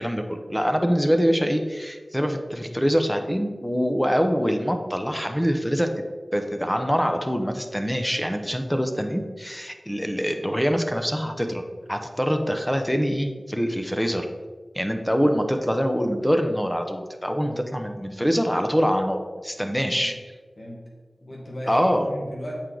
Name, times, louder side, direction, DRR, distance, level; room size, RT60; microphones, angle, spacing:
voice 1, 0.0-5.9 6.3-11.6 11.9-14.3 14.7-20.1 21.7-22.1, equal, 5° left, 5 dB, 0.7 m, -24 dB
voice 2, 21.2-22.5, equal, 50° left, -3 dB, 1.9 m, -36 dB
8.0 x 4.6 x 3.9 m, 1.4 s
wide cardioid pair, 50°, 0 cm